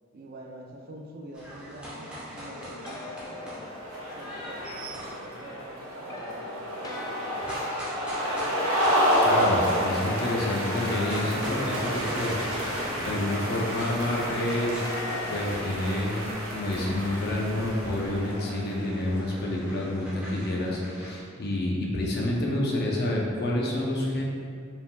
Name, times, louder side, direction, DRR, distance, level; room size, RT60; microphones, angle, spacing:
voice 1, 0.1-3.7 4.1-4.7 5.0-7.5, right 1 dB, 45° right, 0 dB, 0.5 m, -45 dB
sound 1, 1.3-5.3 7.3-10.4 10.6-21.2, right 1 dB, 5° right, 0.8 m, -41 dB
sound 2, 2.5-4.4 5.3-9.0 9.3-12.9 13.3-16.8, left 2 dB, 20° left, 0.3 m, -44 dB
sound 3, 3.2-18.9, equal, 80° right, 0.7 m, -30 dB
voice 2, 9.2-14.8 15.3-16.2 16.5-24.2, left 1 dB, 50° left, -3 dB, 0.7 m, -29 dB
4.8 x 3.5 x 2.3 m, 2.2 s
head